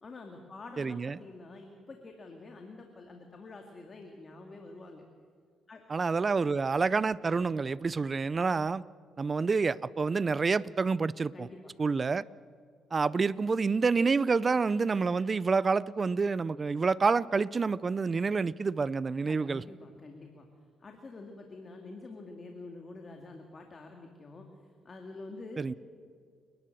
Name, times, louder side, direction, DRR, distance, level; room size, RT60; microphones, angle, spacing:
voice 1, 0.0-5.0 5.7-5.8 11.3-11.7 19.2-20.5 20.8-25.6, left 3 dB, 35° left, 2.1 m, -47 dB
voice 2, 0.8-1.2 5.9-8.8 9.2-11.5 11.8-12.2 12.9-19.6 25.6-25.7, right 4 dB, 35° right, 0.4 m, -28 dB
28.5 x 12.0 x 7.6 m
cardioid pair, 90°, 0 cm